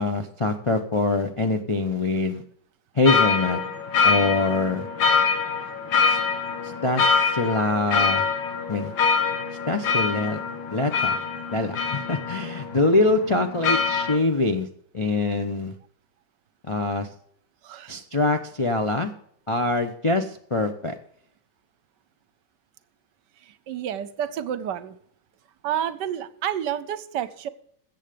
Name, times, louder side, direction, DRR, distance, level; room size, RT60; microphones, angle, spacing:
voice 1, 0.0-2.4 2.9-3.6 4.0-4.9 6.0-6.2 6.6-8.3 8.7-8.9 9.7-10.4 10.7-11.2 11.5-14.7 14.9-15.7 16.7-17.1 17.9-19.1 19.5-20.9, left 2 dB, 40° left, 4 dB, 0.4 m, -24 dB
sound 1, 3.1-14.2, left 5 dB, 90° left, 2.3 m, -24 dB
voice 2, 23.7-25.0 25.6-27.5, right 10 dB, 75° right, 15 dB, 1.3 m, -29 dB
14.5 x 8.2 x 5.1 m, 0.65 s
omnidirectional pair, 2.0 m